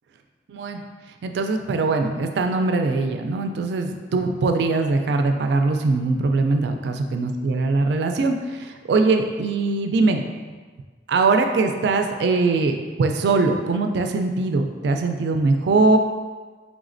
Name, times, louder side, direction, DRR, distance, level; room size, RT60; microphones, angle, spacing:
voice 1, 0.5-0.8 1.2-10.2 11.1-16.0, right 3 dB, 70° right, 5 dB, 0.3 m, -21 dB
4.0 x 3.5 x 2.5 m, 1.4 s
head